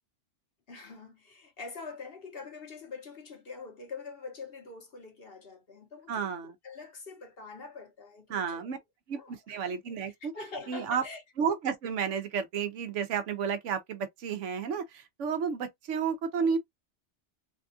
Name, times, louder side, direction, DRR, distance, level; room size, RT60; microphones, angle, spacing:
voice 1, 0.7-6.4 6.6-8.7 9.1-9.6 10.2-11.2, left 4 dB, 55° left, 1.3 m, -44 dB
voice 2, 6.1-6.5 8.3-8.8 9.1-10.3 10.7-11.0 11.4-16.6, right 6 dB, 85° right, 1.1 m, -32 dB
3.4 x 2.4 x 2.6 m
omnidirectional pair, 1.2 m